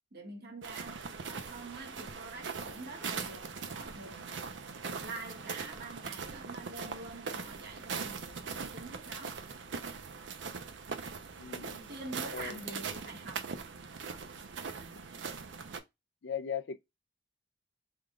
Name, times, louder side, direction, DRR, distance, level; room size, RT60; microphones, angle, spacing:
voice 1, 0.1-4.6 5.0-9.4 11.6-13.5 14.1-14.3 14.8-15.4, right 2 dB, 55° right, 1.2 m, -46 dB
sound 1, 0.6-15.8, right 5 dB, 70° right, 0.6 m, -41 dB
voice 2, 11.4-11.9 12.3-12.6 16.2-16.8, left 7 dB, 65° left, 0.4 m, -38 dB
3.6 x 2.3 x 3.7 m
head